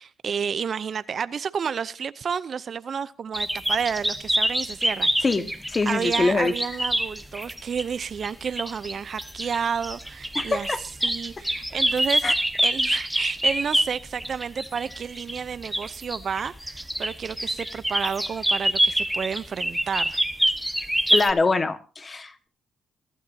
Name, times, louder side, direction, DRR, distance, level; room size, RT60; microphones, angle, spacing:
voice 1, 0.0-5.1 5.9-10.7 11.0-20.2, right 6 dB, 50° right, 0.7 m, -30 dB
sound 1, 3.3-7.8 8.2-21.3, right 1 dB, ahead, 1.4 m, -26 dB
voice 2, 5.2-6.5 10.3-10.8 12.2-12.3 21.1-22.5, left 3 dB, 30° left, 1.6 m, -24 dB
23.5 x 12.0 x 2.8 m
cardioid pair, 90°, 0 cm